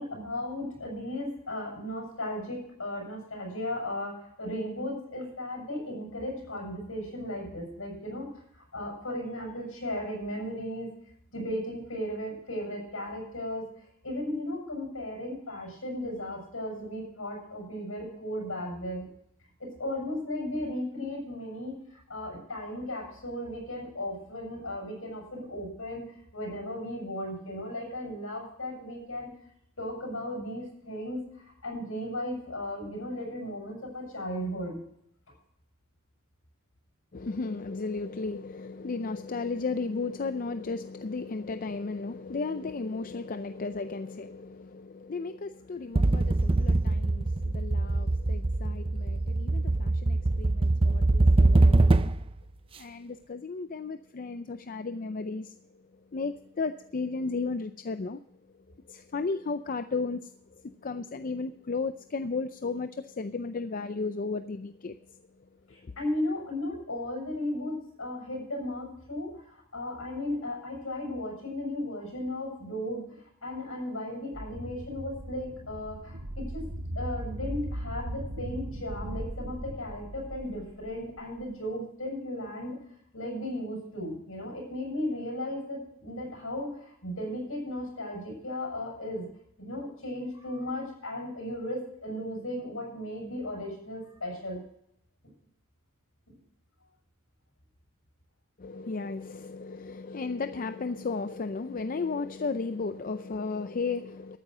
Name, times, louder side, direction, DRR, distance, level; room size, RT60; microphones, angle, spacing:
voice 1, 0.0-10.9 11.3-13.6 14.0-19.1 19.6-26.0 26.3-29.3 29.8-34.8 65.7-73.0 73.4-76.7 77.0-82.8 83.1-89.3 89.6-94.6 96.3-96.4, left 1 dB, 70° left, 0 dB, 7.2 m, -36 dB
voice 2, 37.1-52.0 52.8-55.8 56.1-58.2 58.9-65.2 65.8-65.9 98.6-104.4, left 4 dB, 40° left, 10 dB, 0.5 m, -34 dB
sound 1, 46.0-52.3, right 2 dB, 25° right, 0.5 m, -23 dB
sound 2, 74.3-81.4, right 1 dB, 80° right, 1.4 m, -38 dB
13.5 x 9.1 x 6.1 m, 0.71 s
head